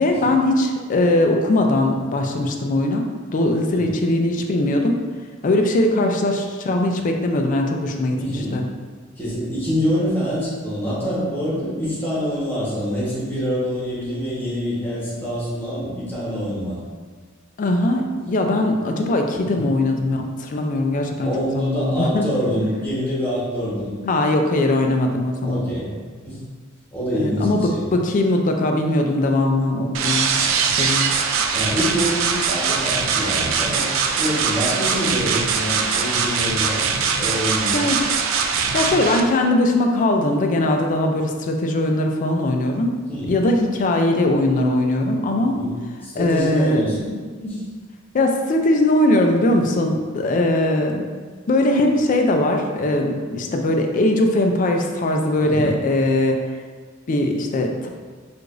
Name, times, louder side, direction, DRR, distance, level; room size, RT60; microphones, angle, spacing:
voice 1, 0.0-3.1 3.3-5.0 5.4-8.7 17.6-22.3 22.6-22.7 24.1-25.7 27.2-30.3 30.7-31.1 37.7-38.0 38.7-43.0 43.3-45.6 46.2-46.9 48.1-51.0 51.5-56.4 57.1-57.9, left 1 dB, 40° left, 3 dB, 0.4 m, -20 dB
voice 2, 8.2-8.6 9.2-16.8 19.3-19.6 21.2-23.9 25.4-26.0 26.2-26.4 26.9-28.0 31.5-33.9 34.2-37.9 43.1-43.3 45.5-45.8 46.0-47.6 55.4-55.7, equal, 10° left, -8 dB, 1.1 m, -26 dB
sound 1, 29.9-39.2, right 6 dB, 80° right, 0.3 m, -22 dB
4.7 x 2.5 x 2.5 m, 1.5 s
head